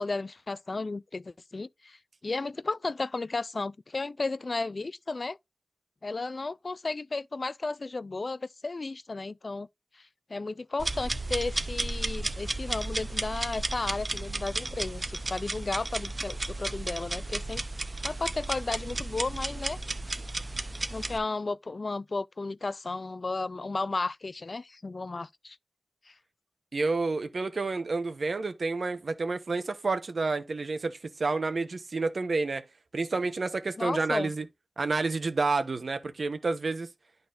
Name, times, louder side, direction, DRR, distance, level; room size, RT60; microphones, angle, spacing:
voice 1, 0.0-5.4 6.0-9.7 9.9-17.6 18.0-19.8 20.9-25.6 26.1-26.2 33.8-34.3, left 3 dB, 55° left, 0.3 m, -34 dB
sound 1, 10.8-21.2, right 2 dB, 40° right, 0.7 m, -33 dB
voice 2, 26.7-32.6 32.9-34.4 34.8-36.9, right 3 dB, 75° right, 0.9 m, -29 dB
11.5 x 4.0 x 2.5 m
wide cardioid pair, 65°, 0 cm